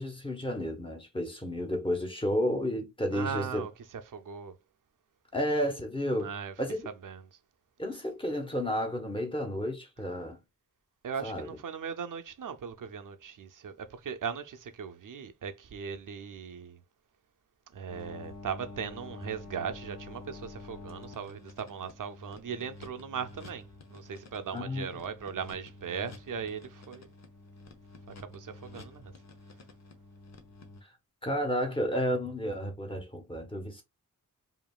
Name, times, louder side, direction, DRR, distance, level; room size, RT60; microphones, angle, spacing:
voice 1, 0.0-3.6 5.3-6.3 6.6-6.9 7.8-10.4 11.2-11.5 24.5-24.9 31.2-33.8, equal, 15° left, 1.3 m, -31 dB
voice 2, 3.1-3.7 4.1-4.5 6.2-6.5 6.9-7.3 11.0-16.8 17.7-27.1 28.2-29.1, right 6 dB, 70° right, 0.7 m, -38 dB
sound 1, 17.9-30.8, left 2 dB, 50° left, 0.9 m, -49 dB
5.1 x 2.8 x 2.4 m
wide cardioid pair, 110°, 33 cm